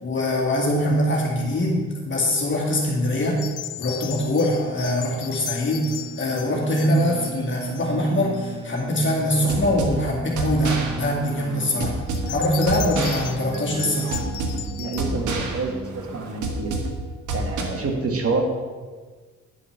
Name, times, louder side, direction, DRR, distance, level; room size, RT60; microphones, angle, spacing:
voice 1, 0.0-3.4 3.8-5.9 6.2-11.9 12.3-14.1, left 1 dB, 40° left, -2 dB, 2.1 m, -23 dB
sound 1, 3.4-7.9 8.3-8.8 9.4-9.5 12.1-15.0, left 14 dB, 80° left, 0.6 m, -37 dB
sound 2, 4.5-16.4, right 4 dB, 15° right, 0.5 m, -37 dB
sound 3, 9.3-17.6, right 2 dB, 80° right, 1.5 m, -29 dB
voice 2, 14.8-15.7 16.1-16.7 17.3-18.4, right 3 dB, 50° right, 2 dB, 2.0 m, -27 dB
9.9 x 5.5 x 5.9 m, 1.4 s
cardioid pair, 90°, 30 cm